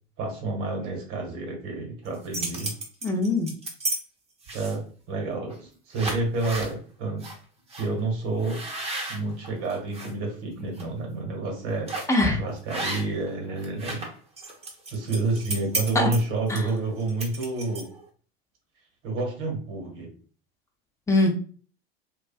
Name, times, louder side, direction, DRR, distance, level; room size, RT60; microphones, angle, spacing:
voice 1, 0.2-2.7 4.5-7.3 7.7-8.6 9.1-11.9 12.3-14.1 14.9-17.9 19.0-20.1, right 3 dB, 45° right, 1 dB, 1.1 m, -29 dB
sound 1, 2.0-4.0 4.4-4.9 5.5-5.6 5.9-6.7 7.2-7.3 7.7-7.9 8.4-10.1 10.6-10.8 11.9-12.2 12.7-13.3 13.6-18.0, right 2 dB, 20° right, 0.8 m, -33 dB
voice 2, 3.0-3.5 12.1-12.4 15.9-16.1 16.5-16.6 21.1-21.3, left 2 dB, 10° left, 2 dB, 0.6 m, -22 dB
2.4 x 2.3 x 2.3 m, 0.41 s
hypercardioid pair, 80°, 29 cm